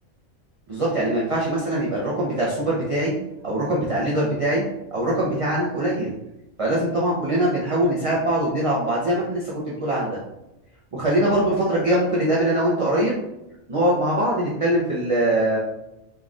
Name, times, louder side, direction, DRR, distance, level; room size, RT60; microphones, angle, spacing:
voice 1, 0.7-3.1 3.4-4.6 4.9-6.1 6.6-10.2 10.9-13.2 13.7-15.6, right 1 dB, 35° right, -6 dB, 0.6 m, -22 dB
3.8 x 3.3 x 2.4 m, 0.90 s
omnidirectional pair, 1.4 m